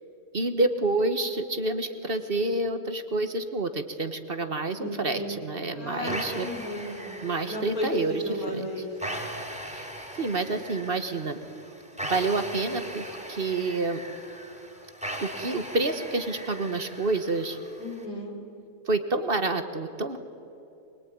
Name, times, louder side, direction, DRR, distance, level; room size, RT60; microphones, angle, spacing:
voice 1, 0.3-6.5 7.2-8.7 9.7-9.9 10.2-11.4 12.0-14.0 15.2-17.6 18.9-20.2, right 2 dB, 40° right, 9 dB, 1.5 m, -28 dB
voice 2, 4.8-5.3 5.7-7.1 7.5-8.9 17.8-18.3, left 1 dB, 85° left, -1 dB, 5.9 m, -34 dB
sound 1, 6.1-18.1, equal, 5° right, 4.0 m, -39 dB
24.5 x 22.0 x 9.4 m, 2.9 s
omnidirectional pair, 1.5 m